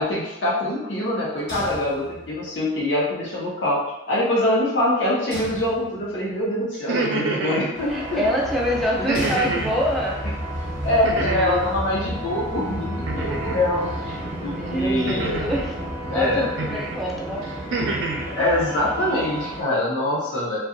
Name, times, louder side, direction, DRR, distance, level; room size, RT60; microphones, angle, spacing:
voice 1, 0.0-8.2 10.8-14.1 14.4-15.4 16.1-16.5 18.3-20.6, left 1 dB, 80° left, -4 dB, 0.8 m, -24 dB
sound 1, 1.5-2.6 5.3-6.3 9.1-10.3, equal, 65° left, 1.2 m, -36 dB
sound 2, 6.7-7.6 9.1-9.8 11.0-11.7 13.1-13.6 15.1-15.7 16.6-16.9 17.4-18.3, right 3 dB, 85° right, 0.4 m, -27 dB
sound 3, 7.7-19.6, equal, 45° right, 0.7 m, -31 dB
voice 2, 7.9-10.2 14.1-15.7 16.0-17.5, equal, ahead, -4 dB, 0.4 m, -26 dB
2.7 x 2.2 x 2.5 m, 0.92 s
head